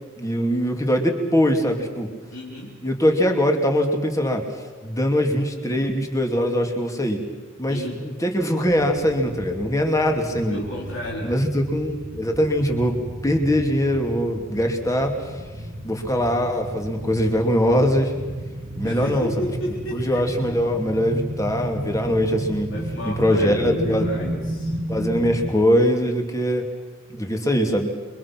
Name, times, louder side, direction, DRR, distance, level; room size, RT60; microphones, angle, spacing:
voice 1, 0.2-2.1 2.8-4.4 4.8-7.2 7.6-10.6 11.2-13.0 13.2-15.1 15.8-18.1 18.8-19.3 19.9-22.7 23.2-24.1 24.9-26.6 27.1-27.9, equal, 15° left, 3 dB, 2.7 m, -22 dB
voice 2, 2.3-2.8 7.6-8.0 10.5-11.5 18.8-20.6 22.7-24.8, equal, 70° left, -3 dB, 4.4 m, -32 dB
sound 1, 8.6-25.5, right 1 dB, 45° right, 2.3 m, -33 dB
28.5 x 24.0 x 6.1 m, 1.4 s
head